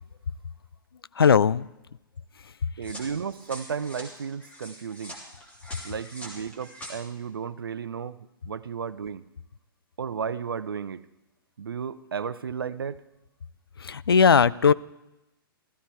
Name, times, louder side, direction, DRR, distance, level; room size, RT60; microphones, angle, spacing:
voice 1, 1.2-1.7 13.8-14.7, left 6 dB, 80° left, 0.4 m, -18 dB
sound 1, 2.8-6.9, equal, 10° left, 2.9 m, -44 dB
voice 2, 2.8-5.2 5.8-8.2 8.4-9.2 10.0-11.0 11.6-13.0, right 6 dB, 75° right, 0.6 m, -33 dB
15.0 x 14.0 x 4.5 m
figure-of-eight pair, 115°, 12 cm